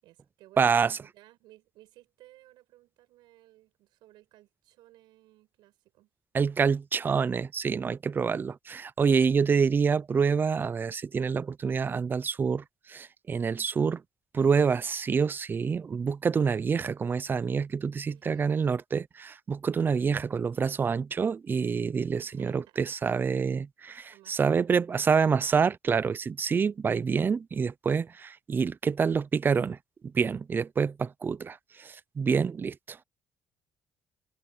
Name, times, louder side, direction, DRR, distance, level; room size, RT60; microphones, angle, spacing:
voice 1, 0.0-6.1 8.3-8.6 9.2-9.5 18.1-18.7 22.2-22.8 24.1-24.6, right 17 dB, 85° right, 7.2 m, -58 dB
voice 2, 0.6-1.0 6.3-14.0 14.3-29.8 30.1-33.0, right 6 dB, 25° right, 0.5 m, -27 dB
cardioid pair, 130°, 7 cm